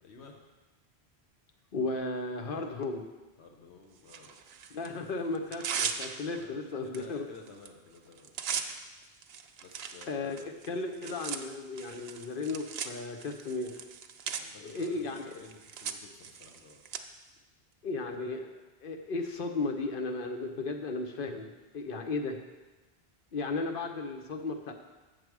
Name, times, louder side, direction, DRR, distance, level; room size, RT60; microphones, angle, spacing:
voice 1, 0.0-0.4 2.5-2.8 3.4-4.4 6.4-6.6 6.8-8.3 9.6-10.5 14.3-16.8, left 4 dB, 90° left, 2 dB, 1.1 m, -52 dB
voice 2, 1.7-3.0 4.7-7.3 10.1-13.8 14.6-15.2 17.8-18.5 18.8-21.5 21.7-22.4 23.3-24.7, left 3 dB, 60° left, 4 dB, 1.0 m, -35 dB
Tearing, 4.1-4.9 5.3-6.4 6.9-7.1 7.3-7.7 7.9-17.0, right 7 dB, 70° right, 0.8 m, -39 dB
7.6 x 6.5 x 4.7 m, 1.2 s
omnidirectional pair, 1.1 m